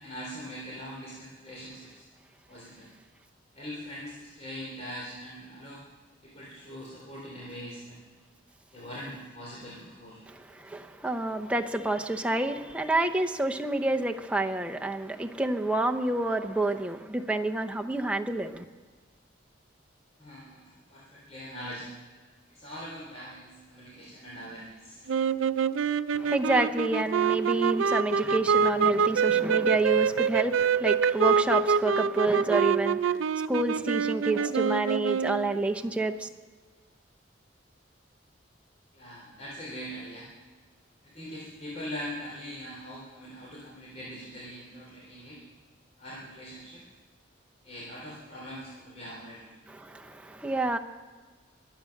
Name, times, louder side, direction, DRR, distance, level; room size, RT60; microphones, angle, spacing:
voice 1, 0.0-2.0 2.5-2.9 3.5-5.8 6.2-8.0 8.7-10.2 20.2-21.9 22.5-25.0 38.9-40.3 41.1-45.4 46.0-46.8 47.6-49.5, equal, 35° left, 3.3 m, -42 dB
voice 2, 10.3-18.6 26.1-33.2 33.5-36.3 49.7-50.8, right 2 dB, 5° right, 0.7 m, -28 dB
sound 1, 25.1-35.6, right 6 dB, 90° right, 0.5 m, -26 dB
23.5 x 8.5 x 6.5 m
head